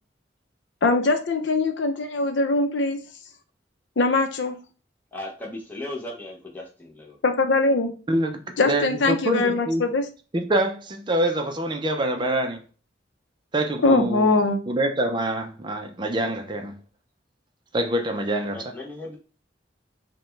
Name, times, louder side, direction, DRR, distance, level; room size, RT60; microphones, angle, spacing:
voice 1, 0.8-3.0 4.0-4.6 7.2-8.0 8.6-10.1 13.8-14.6, left 3 dB, 80° left, 0.6 m, -21 dB
voice 2, 5.1-7.2 18.5-19.2, left 1 dB, 10° left, 0.7 m, -36 dB
voice 3, 8.1-9.8 10.3-12.6 13.5-14.3 14.7-16.7 17.7-18.6, right 1 dB, 25° right, 0.5 m, -25 dB
4.8 x 2.2 x 3.2 m
head